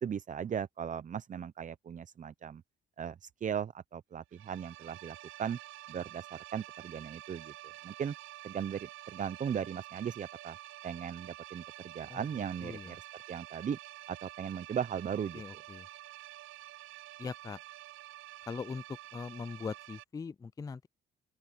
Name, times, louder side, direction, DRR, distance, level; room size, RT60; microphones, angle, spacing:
voice 1, 0.0-2.6 3.0-5.6 5.9-8.1 8.4-10.6 10.8-13.8 14.1-15.6, right 8 dB, 40° right, 0.7 m, -38 dB
sound 1, 4.3-20.0, right 16 dB, 85° right, 0.6 m, -49 dB
voice 2, 12.6-13.0 15.3-15.9 17.2-17.6 18.5-18.8 19.1-20.9, left 5 dB, 20° left, 0.3 m, -41 dB
open air
cardioid pair, 90°, 20 cm